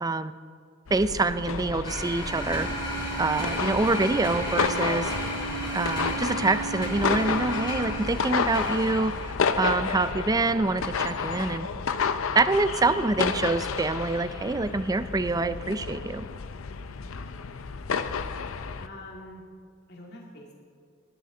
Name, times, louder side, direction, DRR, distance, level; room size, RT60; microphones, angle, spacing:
voice 1, 0.0-0.3 0.9-2.7 3.2-5.1 5.7-9.1 9.6-11.7 12.3-16.3, right 3 dB, 20° right, 13 dB, 0.4 m, -26 dB
sound 1, 0.9-18.9, left 5 dB, 80° left, 0.6 m, -31 dB
sound 2, 1.8-9.4, left 1 dB, 20° left, 3.8 m, -34 dB
Wind instrument woodwind instrument, 2.2-8.2, right 6 dB, 75° right, 1.7 m, -37 dB
voice 2, 18.1-19.4 19.9-20.6, left 1 dB, 55° left, -1 dB, 2.2 m, -47 dB
19.0 x 11.5 x 3.9 m, 2.2 s
head